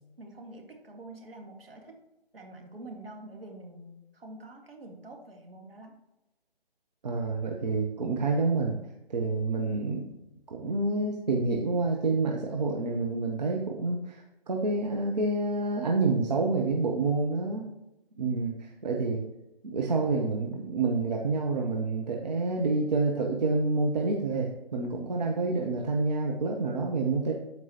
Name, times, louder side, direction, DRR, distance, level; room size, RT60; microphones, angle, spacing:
voice 1, 0.2-2.0 2.3-5.9, right 2 dB, 70° right, 2 dB, 2.1 m, -46 dB
voice 2, 7.0-8.8 9.1-10.1 10.5-17.7 18.2-19.2 19.6-27.3, right 3 dB, 45° right, 0 dB, 0.9 m, -28 dB
13.0 x 4.7 x 2.9 m, 0.94 s
figure-of-eight pair, 150°, 31 cm